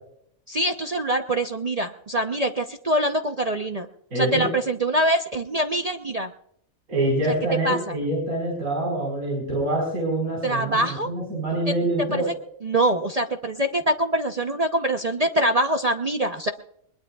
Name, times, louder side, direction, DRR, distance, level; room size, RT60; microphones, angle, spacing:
voice 1, 0.5-3.9 4.1-6.3 7.6-7.9 10.4-11.1 11.7-12.2 12.6-16.5, right 1 dB, 35° right, 5 dB, 0.7 m, -24 dB
voice 2, 4.1-4.5 6.9-12.3, right 1 dB, 85° right, -3 dB, 5.1 m, -25 dB
21.5 x 21.0 x 2.3 m, 0.68 s
omnidirectional pair, 1.4 m